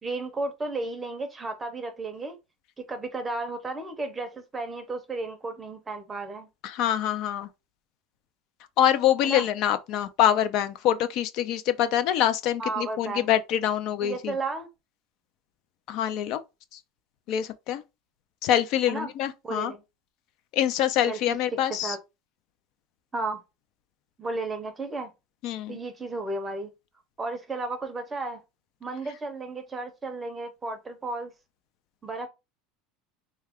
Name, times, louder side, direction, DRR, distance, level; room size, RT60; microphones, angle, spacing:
voice 1, 0.0-2.4 2.8-6.5 9.2-9.4 12.6-13.3 14.0-14.7 18.9-19.1 19.4-19.8 21.1-21.4 21.8-22.0 23.1-23.4 24.2-25.1 25.7-26.7 27.2-28.4 28.8-31.3 32.0-32.3, right 3 dB, 15° right, 0.6 m, -33 dB
voice 2, 6.6-7.5 8.8-14.4 15.9-16.4 17.3-17.8 18.4-19.7 20.5-22.0 25.4-25.8, left 11 dB, 55° left, 0.4 m, -25 dB
3.2 x 2.3 x 3.4 m
supercardioid pair, 130°, 0 cm